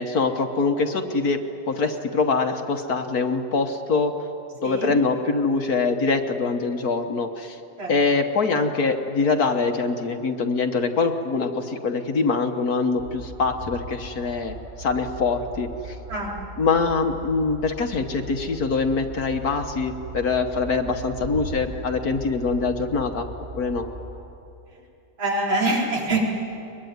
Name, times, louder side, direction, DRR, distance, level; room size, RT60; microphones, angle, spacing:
voice 1, 0.0-1.4 1.7-4.2 4.6-7.6 7.9-16.0 16.6-23.3 23.6-23.9, left 4 dB, 55° left, 6 dB, 1.5 m, -24 dB
sound 1, 13.0-24.2, right 1 dB, 45° right, 7.6 m, -39 dB
voice 2, 25.2-26.2, right 2 dB, 75° right, -3 dB, 5.1 m, -24 dB
23.0 x 22.5 x 9.5 m, 2.9 s
omnidirectional pair, 2.2 m